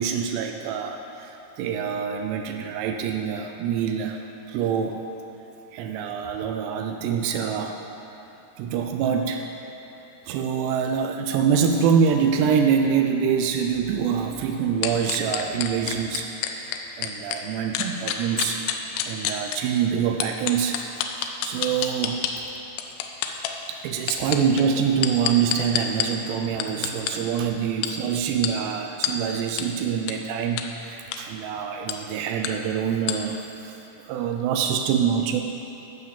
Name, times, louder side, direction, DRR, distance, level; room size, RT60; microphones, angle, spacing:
voice 1, 0.0-5.0 5.7-7.8 8.6-9.5 10.2-18.7 19.0-20.8 21.4-22.2 23.7-33.8 34.0-35.4, right 7 dB, 90° right, 3 dB, 2.8 m, -25 dB
sound 1, 14.8-17.4 17.7-19.6 20.2-22.3 22.8-23.5 24.0-26.1 26.6-27.1 27.8-27.9 28.4-28.5 29.0-29.1 29.6-29.7 30.1-30.2 30.6-30.7 31.0-31.2 31.9-32.0 32.4-32.5 33.1-33.2, left 11 dB, 85° left, 2.8 m, -26 dB
12.0 x 6.6 x 7.1 m, 3.0 s
omnidirectional pair, 4.8 m